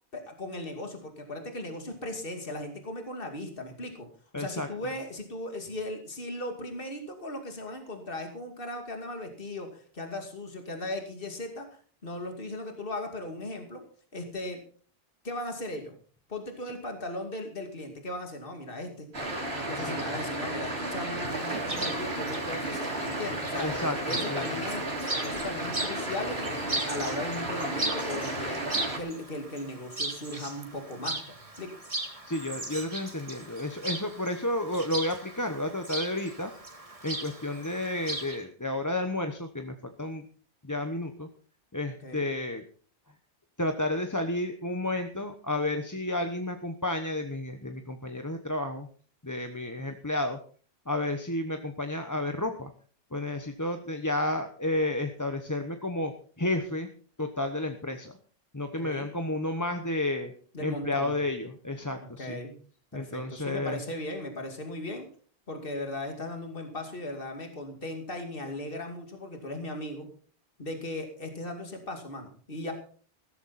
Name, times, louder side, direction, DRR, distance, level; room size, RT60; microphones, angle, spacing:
voice 1, 0.1-4.1 4.3-13.8 14.1-14.6 15.2-15.9 16.3-19.1 19.5-24.8 25.2-28.7 29.0-31.7 42.0-42.2 58.8-59.1 60.5-61.1 62.2-62.6 62.9-65.1 65.5-70.1 70.6-72.7, left 1 dB, 60° left, 4 dB, 2.7 m, -37 dB
voice 2, 4.3-4.7 19.8-19.9 23.5-24.5 32.3-36.5 37.0-40.2 40.6-41.3 41.7-42.6 43.6-48.9 49.2-50.4 50.9-52.7 53.1-56.1 56.4-56.9 57.2-58.1 58.5-60.3 60.6-62.4 62.9-63.8, left 1 dB, 20° left, 6 dB, 1.1 m, -31 dB
sound 1, 19.1-29.0, right 1 dB, 85° right, 3.5 m, -33 dB
Chirp tweet, 21.3-38.4, right 2 dB, 35° right, 2.1 m, -38 dB
16.0 x 14.0 x 4.2 m, 0.42 s
omnidirectional pair, 1.0 m